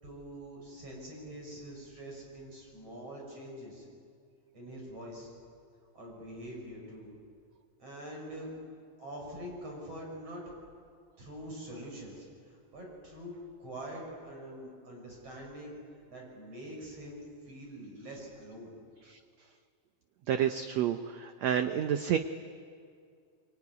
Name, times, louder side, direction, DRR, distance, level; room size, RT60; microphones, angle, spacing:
voice 1, 0.0-3.9 4.5-5.3 5.9-7.2 7.8-8.5 9.0-10.4 11.2-13.3 13.6-15.8 16.1-18.7, right 1 dB, 40° right, -1 dB, 7.5 m, -44 dB
voice 2, 20.3-22.2, right 9 dB, 90° right, 8 dB, 1.5 m, -29 dB
24.0 x 23.5 x 9.7 m, 2.2 s
omnidirectional pair, 4.1 m